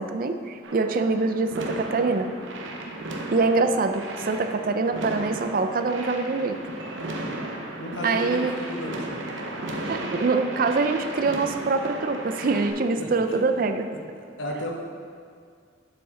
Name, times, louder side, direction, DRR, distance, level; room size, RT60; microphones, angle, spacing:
voice 1, 0.0-2.3 3.3-6.6 8.0-8.5 9.9-13.9, right 3 dB, 50° right, 8 dB, 0.4 m, -24 dB
sound 1, 0.6-12.7, right 1 dB, 90° right, 0.9 m, -35 dB
voice 2, 7.8-9.2 13.0-13.4 14.1-14.7, equal, 85° left, 0 dB, 1.0 m, -34 dB
7.3 x 7.0 x 3.7 m, 2.1 s
head